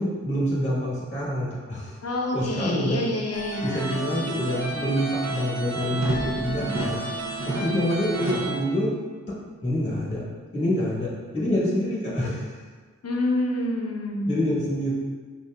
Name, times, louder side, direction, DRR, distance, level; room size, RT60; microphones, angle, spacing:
voice 1, 0.0-2.0 2.3-3.0 3.6-7.0 7.5-8.9 9.6-10.2 10.5-12.6 14.3-14.9, equal, 20° left, -6 dB, 1.1 m, -26 dB
voice 2, 2.0-4.0 6.6-6.7 7.5-8.5 11.4-11.6 12.2-12.3 13.0-14.4, left 1 dB, 50° left, 0 dB, 0.7 m, -28 dB
sound 1, 3.3-8.5, right 2 dB, 55° right, 0.7 m, -31 dB
5.5 x 2.5 x 2.2 m, 1.5 s
cardioid pair, 40°, 32 cm